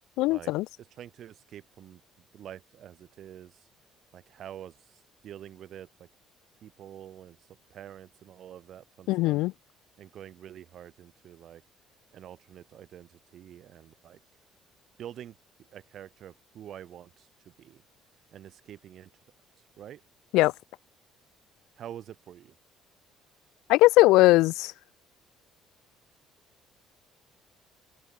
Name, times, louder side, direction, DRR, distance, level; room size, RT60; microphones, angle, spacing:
voice 1, 0.2-0.7 9.1-9.5 20.3-20.5 23.7-24.7, left 20 dB, 90° left, 0.3 m, -20 dB
voice 2, 0.8-2.0 2.3-3.5 4.1-4.7 5.2-6.1 6.6-7.4 7.7-9.4 10.0-11.6 12.1-14.2 15.0-15.3 15.7-17.3 17.6-17.8 18.3-19.1 19.8-20.0 21.8-22.5, right 10 dB, 55° right, 3.9 m, -46 dB
cardioid pair, 135°, 0 cm